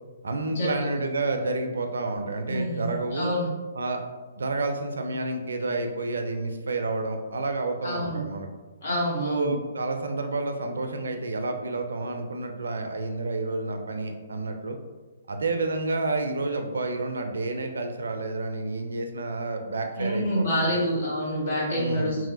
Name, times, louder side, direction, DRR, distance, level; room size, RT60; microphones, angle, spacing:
voice 1, 0.2-3.3 3.7-4.0 4.4-8.5 9.2-14.8 15.3-20.8 21.8-22.2, right 2 dB, 75° right, 5 dB, 0.4 m, -30 dB
voice 2, 2.5-3.5 7.8-8.2 8.8-9.5 20.0-22.3, equal, 60° left, -6 dB, 1.4 m, -27 dB
2.9 x 2.6 x 2.6 m, 1.2 s
hypercardioid pair, 135°, 0 cm